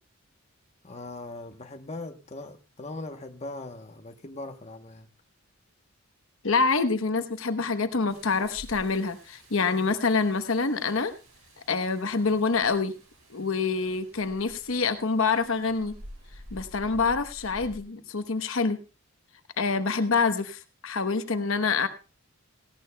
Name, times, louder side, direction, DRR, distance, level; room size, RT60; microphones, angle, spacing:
voice 1, 0.8-5.1, left 2 dB, 30° left, 0.9 m, -40 dB
voice 2, 6.4-11.1 11.7-12.9 13.3-15.9 16.5-18.8 19.6-21.9, left 4 dB, 70° left, 1.0 m, -26 dB
Rain, 8.1-17.8, equal, 75° right, 6.0 m, -50 dB
18.0 x 16.5 x 2.2 m
head